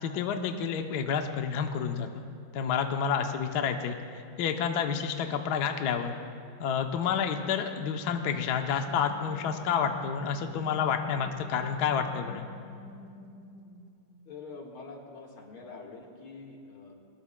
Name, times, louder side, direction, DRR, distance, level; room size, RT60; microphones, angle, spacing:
voice 1, 0.0-2.2 2.5-4.0 4.4-6.1 6.6-12.5, left 7 dB, 65° left, 5 dB, 1.2 m, -29 dB
sound 1, 8.6-14.3, left 2 dB, 20° left, 1.3 m, -48 dB
voice 2, 14.3-16.9, left 4 dB, 90° left, -1 dB, 2.6 m, -45 dB
22.5 x 19.5 x 2.2 m, 2.4 s
omnidirectional pair, 2.3 m